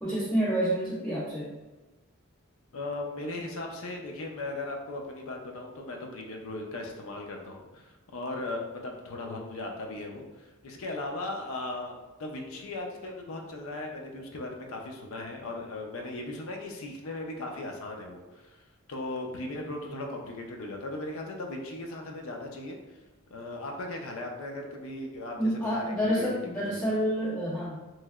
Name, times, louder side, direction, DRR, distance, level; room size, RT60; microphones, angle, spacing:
voice 1, 0.0-1.5 25.4-27.8, equal, 5° left, -8 dB, 0.3 m, -28 dB
voice 2, 2.7-18.6 18.9-22.8 23.3-26.4 26.7-27.0, left 2 dB, 70° left, 1 dB, 0.5 m, -37 dB
3.0 x 2.7 x 2.3 m, 1.2 s
head